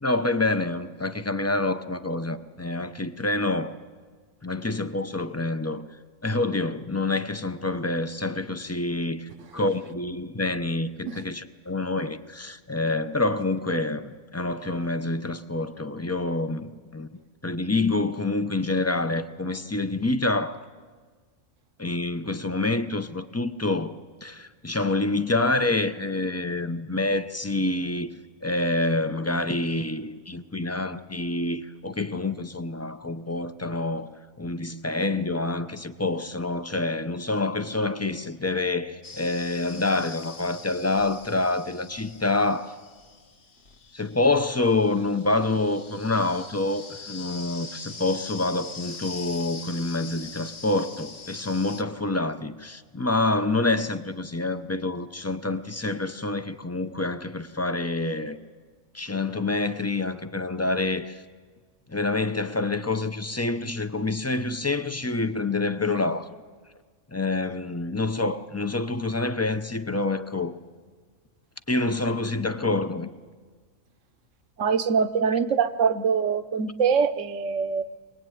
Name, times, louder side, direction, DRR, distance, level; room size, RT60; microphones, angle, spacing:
voice 1, 0.0-3.7 4.4-5.9 6.2-17.1 17.4-20.6 21.8-23.9 24.2-28.1 28.4-34.1 34.4-42.8 43.9-58.4 58.9-61.2 61.9-66.3 67.1-70.5 71.7-73.1, left 2 dB, 20° left, 0.5 m, -27 dB
sound 1, 39.0-51.8, left 4 dB, 50° left, 1.6 m, -43 dB
voice 2, 74.6-77.8, right 6 dB, 65° right, 1.2 m, -24 dB
23.5 x 19.0 x 9.3 m
omnidirectional pair, 1.4 m